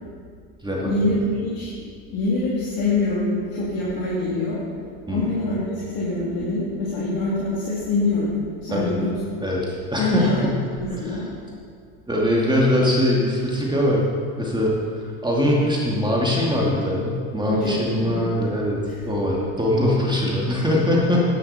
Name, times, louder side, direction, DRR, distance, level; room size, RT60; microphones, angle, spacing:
voice 1, 0.8-1.2 1.4-1.7 2.1-4.6 5.1-8.3 8.6-9.1 10.0-10.4 10.7-11.2 17.5-18.2, left 2 dB, 50° left, -7 dB, 3.0 m, -24 dB
voice 2, 8.7-10.6 10.9-11.2 12.1-14.1 14.4-14.7 15.2-21.3, left 1 dB, 10° right, -4 dB, 2.2 m, -22 dB
11.0 x 10.5 x 4.3 m, 2.2 s
supercardioid pair, 100°, 45 cm